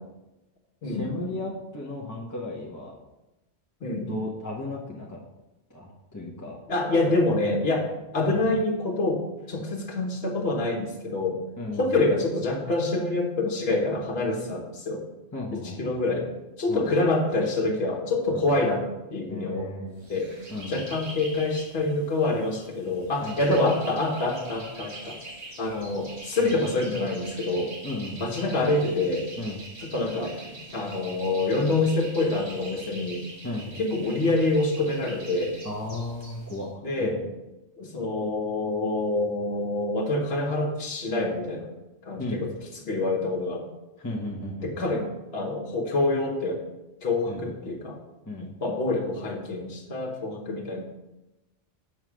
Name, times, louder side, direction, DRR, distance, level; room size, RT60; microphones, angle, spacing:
voice 1, 0.8-2.9 4.1-5.2 5.7-6.6 8.3-8.5 11.6-12.0 15.3-15.9 16.7-17.0 18.3-18.5 19.3-20.1 20.5-20.9 23.2-23.4 26.4-26.6 27.8-28.3 29.4-29.6 33.4-33.7 35.6-37.2 42.2-42.4 44.0-44.9 47.3-47.7 48.3-48.5, left 2 dB, 20° left, -4 dB, 0.8 m, -35 dB
voice 2, 6.7-9.2 9.5-11.4 11.8-15.0 15.5-16.3 16.6-18.8 19.1-19.7 20.1-20.3 20.7-25.2 25.6-27.7 28.2-29.3 29.8-33.2 33.8-35.6 36.8-37.2 37.8-41.7 42.0-42.5 42.8-43.6 44.6-45.0 45.3-46.6 47.0-48.0 48.4-50.8, left 2 dB, 60° left, 1 dB, 1.4 m, -26 dB
sound 1, 20.0-36.6, right 2 dB, 35° right, 2.2 m, -44 dB
7.2 x 3.2 x 6.1 m, 1.0 s
omnidirectional pair, 1.2 m